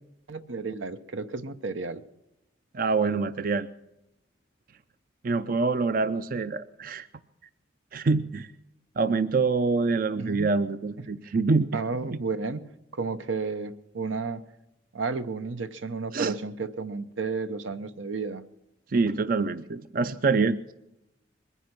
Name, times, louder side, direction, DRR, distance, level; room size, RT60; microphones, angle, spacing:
voice 1, 0.3-2.0 10.2-10.5 11.7-12.7 12.9-14.4 14.9-18.4, right 4 dB, 85° right, 12 dB, 0.8 m, -32 dB
voice 2, 2.7-3.7 5.2-7.1 7.9-8.5 9.0-11.7 12.1-12.2 16.1-16.4 18.9-20.6, right 4 dB, 45° right, 13 dB, 0.5 m, -25 dB
21.5 x 10.0 x 6.0 m, 0.89 s
head